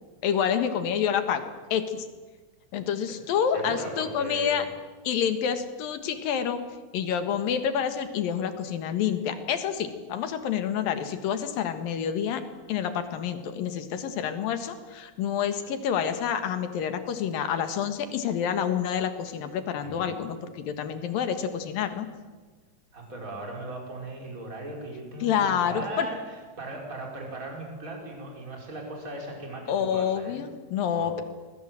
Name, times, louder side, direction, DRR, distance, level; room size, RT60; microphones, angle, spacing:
voice 1, 0.2-2.1 2.7-4.6 5.0-6.6 6.9-12.4 12.7-22.1 25.2-26.1 29.7-31.2, left 8 dB, 80° left, 8 dB, 3.3 m, -28 dB
voice 2, 3.5-4.7 19.8-20.2 22.9-30.4 30.9-31.2, right 2 dB, 20° right, 0 dB, 5.4 m, -38 dB
26.5 x 21.0 x 7.7 m, 1.4 s
omnidirectional pair, 4.0 m